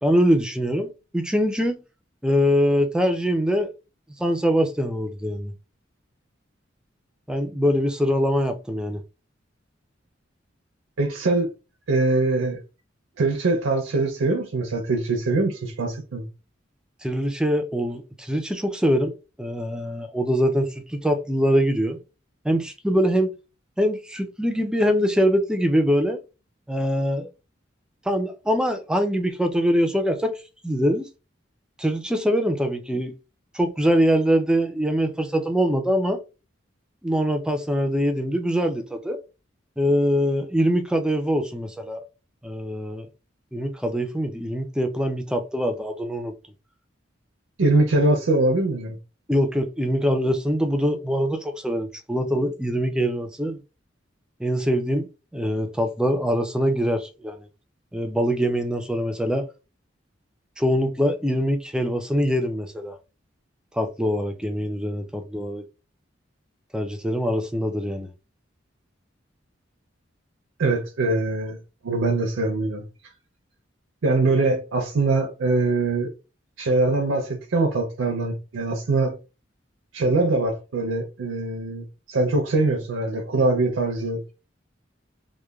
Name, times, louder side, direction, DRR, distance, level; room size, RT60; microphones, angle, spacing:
voice 1, 0.0-1.8 2.2-3.7 4.2-5.5 7.3-9.0 17.0-19.1 19.4-22.0 22.4-23.3 23.8-26.2 26.7-27.3 28.1-30.4 30.6-31.1 31.8-33.1 33.5-36.2 37.0-39.2 39.8-42.0 42.4-43.1 43.5-46.3 49.3-53.6 54.4-55.1 55.3-57.4 57.9-59.5 60.6-63.0 63.7-65.6 66.7-68.1, equal, 5° right, 0.3 m, -23 dB
voice 2, 11.0-11.5 11.9-12.6 13.2-16.3 47.6-49.0 70.6-71.6 71.8-72.8 74.0-76.1 76.6-79.2 79.9-84.4, right 2 dB, 85° right, 0.5 m, -23 dB
3.0 x 2.1 x 2.3 m
head